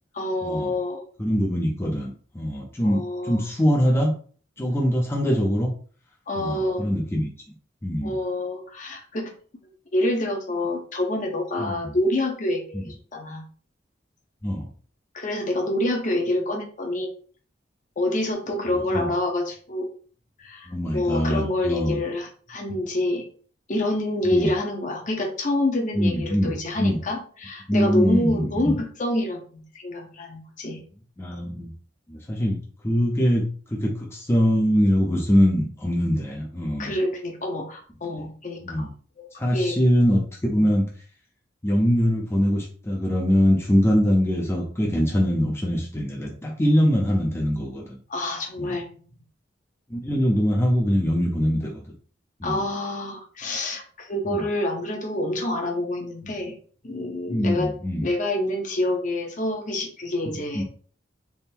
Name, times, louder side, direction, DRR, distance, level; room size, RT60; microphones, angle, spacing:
voice 1, 0.1-1.0 2.8-3.4 6.3-6.9 8.0-9.3 9.9-12.8 13.1-13.4 15.1-17.1 18.0-19.9 20.4-23.3 23.7-30.8 36.8-38.9 39.2-39.3 39.5-39.7 40.6-40.7 48.1-48.9 52.4-56.5 56.8-57.7 58.0-60.6, left 1 dB, 40° left, 2 dB, 0.8 m, -27 dB
voice 2, 1.2-4.1 4.6-5.7 6.4-7.3 7.8-8.1 11.6-11.9 12.7-12.8 14.4-14.7 18.9-19.1 20.7-22.0 24.3-24.5 26.0-27.0 27.7-28.7 31.2-31.7 32.1-36.9 38.6-38.9 39.4-40.9 41.6-48.0 48.6-48.7 49.9-51.8 52.4-52.6 54.3-54.4 57.3-58.1 60.3-60.6, equal, 15° left, -2 dB, 0.5 m, -23 dB
3.5 x 2.1 x 4.3 m, 0.43 s
head